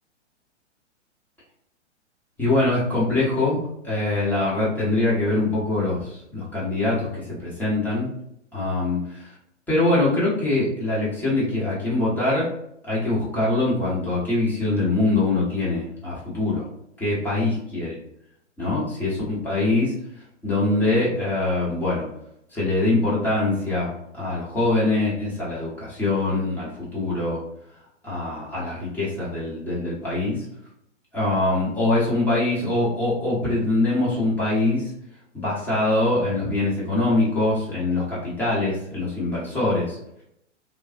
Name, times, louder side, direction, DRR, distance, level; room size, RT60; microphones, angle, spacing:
voice 1, 2.4-8.1 8.5-9.3 9.7-12.5 12.8-16.6 17.0-18.0 18.6-19.9 20.4-22.1 22.5-27.4 28.0-30.4 31.1-34.9 35.3-40.0, left 2 dB, 5° left, -8 dB, 0.9 m, -23 dB
3.3 x 2.3 x 2.5 m, 0.76 s
figure-of-eight pair, 115°, 36 cm